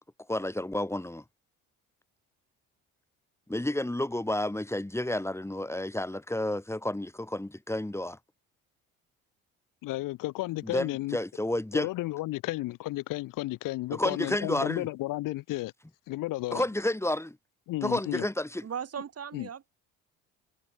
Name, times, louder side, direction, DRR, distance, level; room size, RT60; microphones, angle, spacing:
voice 1, 0.3-1.2 3.5-8.2 10.6-11.9 13.9-14.9 16.5-17.4 17.8-18.7, left 1 dB, 10° left, 3.1 m, -30 dB
voice 2, 9.8-11.2 11.7-15.7 16.1-16.6 17.7-18.3 19.3-19.5, left 18 dB, 70° left, 1.4 m, -33 dB
voice 3, 18.6-19.7, right 8 dB, 45° right, 4.4 m, -37 dB
supercardioid pair, 70°, 33 cm